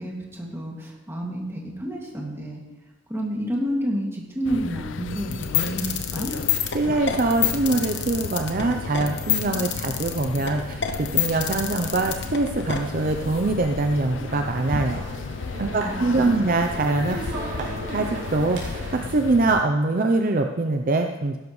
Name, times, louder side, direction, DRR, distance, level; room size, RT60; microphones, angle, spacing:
voice 1, 0.0-2.6 3.1-6.4 15.7-16.5, equal, 15° right, -2 dB, 2.2 m, -30 dB
sound 1, 4.4-19.6, left 4 dB, 80° left, 0.5 m, -34 dB
sound 2, 5.3-12.8, left 11 dB, 65° left, 1.1 m, -26 dB
voice 2, 6.7-15.0 15.6-17.3 17.6-17.7 17.9-21.4, right 2 dB, 45° right, 4 dB, 0.6 m, -23 dB
sound 3, 6.8-19.1, right 1 dB, 70° right, 3.3 m, -39 dB
16.0 x 12.5 x 3.2 m, 1.1 s
head